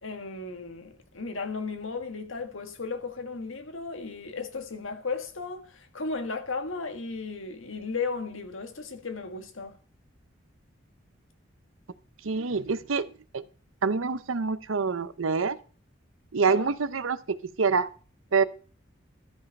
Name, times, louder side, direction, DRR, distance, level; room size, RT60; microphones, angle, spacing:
voice 1, 0.0-9.8 16.5-16.7, left 4 dB, 80° left, 1.6 m, -35 dB
voice 2, 12.2-13.4 13.8-15.6 16.3-17.9 18.3-18.4, right 5 dB, 90° right, 0.7 m, -26 dB
13.0 x 5.4 x 5.3 m
head